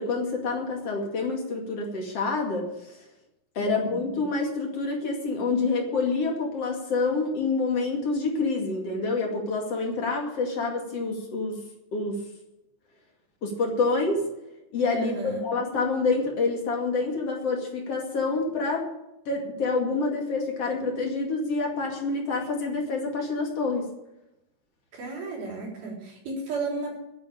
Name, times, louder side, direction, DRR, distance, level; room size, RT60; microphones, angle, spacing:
voice 1, 0.0-3.0 3.5-11.6 11.9-12.2 13.4-14.2 14.7-18.8 19.3-23.9, left 3 dB, 45° left, 1 dB, 2.8 m, -27 dB
voice 2, 3.6-4.0 14.9-15.4 24.9-27.0, right 3 dB, 65° right, -1 dB, 5.5 m, -33 dB
9.9 x 8.7 x 10.0 m, 0.89 s
omnidirectional pair, 4.7 m